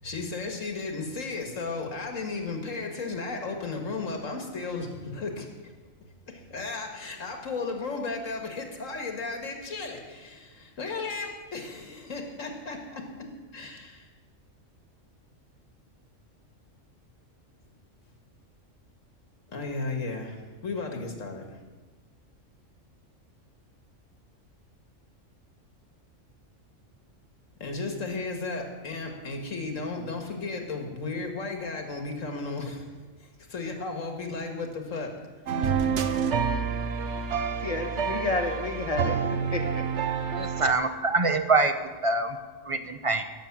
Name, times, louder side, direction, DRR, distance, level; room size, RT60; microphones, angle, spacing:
voice 1, 0.0-5.7 6.3-14.1 19.5-21.5 27.6-32.9 33.2-35.1, left 3 dB, 80° left, 2.1 m, -34 dB
sound 1, 35.5-40.7, right 6 dB, 65° right, 1.2 m, -28 dB
voice 2, 37.6-39.8, left 3 dB, 30° left, 1.4 m, -30 dB
voice 3, 40.4-41.7 42.0-42.4 42.7-43.2, right 3 dB, 30° right, 0.7 m, -24 dB
15.5 x 6.8 x 7.3 m
omnidirectional pair, 1.3 m